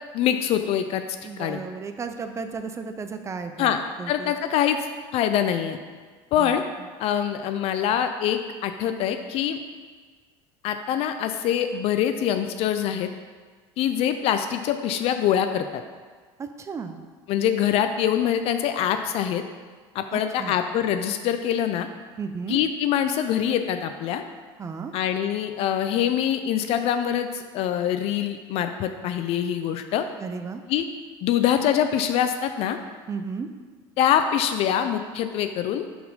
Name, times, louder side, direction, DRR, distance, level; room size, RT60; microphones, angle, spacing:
voice 1, 0.1-1.0 1.4-1.6 3.6-3.8 4.1-4.8 5.1-5.8 6.3-6.6 7.0-9.6 10.6-13.1 13.8-15.8 17.3-19.4 19.9-21.9 22.5-24.2 24.9-30.0 30.7-30.8 31.2-32.8 34.0-35.9, left 9 dB, 60° left, 8 dB, 0.4 m, -24 dB
voice 2, 1.2-4.3 6.4-6.6 16.4-17.0 20.1-20.5 22.2-22.6 24.6-24.9 30.2-30.6 33.1-33.5, right 5 dB, 25° right, 7 dB, 0.4 m, -34 dB
4.3 x 4.2 x 5.4 m, 1.5 s
supercardioid pair, 110°, 11 cm